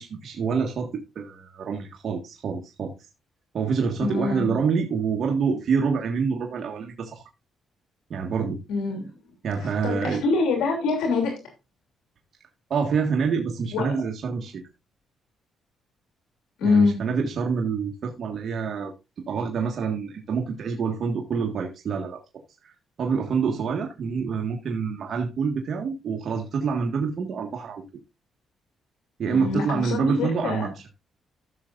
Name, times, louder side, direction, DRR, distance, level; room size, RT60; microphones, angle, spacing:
voice 1, 0.0-2.9 3.5-7.2 8.1-8.6 9.4-10.2 12.7-14.6 16.6-18.9 19.3-22.2 22.6-27.8 29.2-30.8, right 5 dB, 55° right, 1.7 m, -27 dB
voice 2, 4.0-4.6 8.7-9.1 9.6-11.4 13.7-13.9 16.6-17.0 29.3-30.7, left 4 dB, 85° left, 2.9 m, -24 dB
15.0 x 6.5 x 2.5 m
cardioid pair, 90°, 0 cm